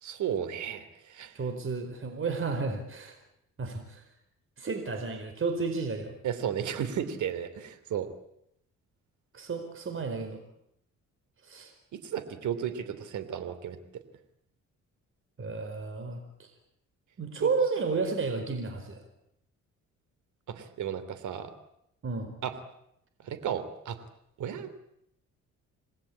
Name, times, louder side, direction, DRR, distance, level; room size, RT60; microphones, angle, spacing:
voice 1, 0.0-1.3 6.2-8.1 11.9-13.8 17.4-17.5 20.5-21.5 22.4-22.5 23.2-24.0 24.4-24.7, right 9 dB, 75° right, 12 dB, 3.1 m, -34 dB
voice 2, 1.3-3.1 3.6-4.0 4.6-6.2 9.3-10.4 11.4-11.7 15.4-16.5 17.2-19.1 22.0-22.3, right 4 dB, 45° right, 6 dB, 4.8 m, -32 dB
27.5 x 19.5 x 8.7 m, 0.76 s
cardioid pair, 90°, 30 cm